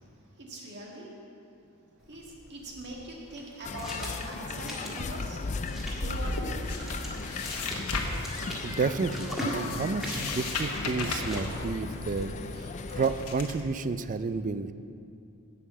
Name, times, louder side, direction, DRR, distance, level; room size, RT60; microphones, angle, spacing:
voice 1, 0.2-1.2 2.0-5.4 5.9-7.4, right 1 dB, 50° right, -2 dB, 1.8 m, -43 dB
sound 1, 2.0-13.0, equal, ahead, 1.8 m, -42 dB
sound 2, 3.6-13.3, left 4 dB, 30° left, 0.4 m, -37 dB
sound 3, 5.3-13.6, left 2 dB, 85° left, 1.2 m, -36 dB
voice 2, 8.6-14.7, right 4 dB, 35° right, 11 dB, 0.4 m, -31 dB
11.0 x 5.7 x 8.2 m, 2.6 s
head